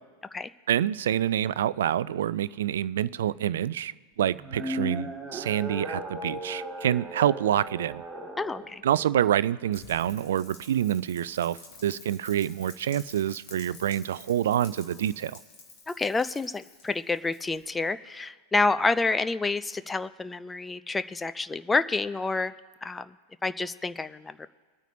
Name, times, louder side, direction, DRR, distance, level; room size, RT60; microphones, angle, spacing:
voice 1, 0.7-3.9 4.2-8.0 8.8-15.4, right 11 dB, 60° right, 0.3 m, -27 dB
sound 1, 4.3-8.7, right 1 dB, 5° right, 1.6 m, -36 dB
voice 2, 8.4-8.8 15.9-22.5 22.8-23.1 23.4-24.5, left 3 dB, 10° left, 0.4 m, -28 dB
Rain, 9.7-17.8, left 4 dB, 40° left, 3.1 m, -50 dB
23.0 x 9.0 x 2.6 m
figure-of-eight pair, 90°, 0 cm